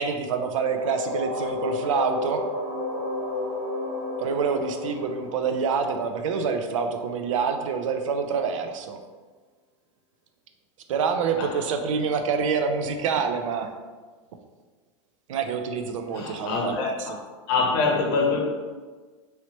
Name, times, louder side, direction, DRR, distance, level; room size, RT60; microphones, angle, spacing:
voice 1, 0.0-2.4 4.2-9.0 10.9-13.7 15.3-17.2, right 5 dB, 85° right, 6 dB, 0.5 m, -27 dB
sound 1, 0.8-6.5, left 2 dB, 25° right, 0.6 m, -32 dB
voice 2, 16.1-17.2 17.5-18.4, left 4 dB, 45° left, -1 dB, 0.8 m, -25 dB
3.1 x 2.9 x 2.9 m, 1.4 s
supercardioid pair, 155°, 16 cm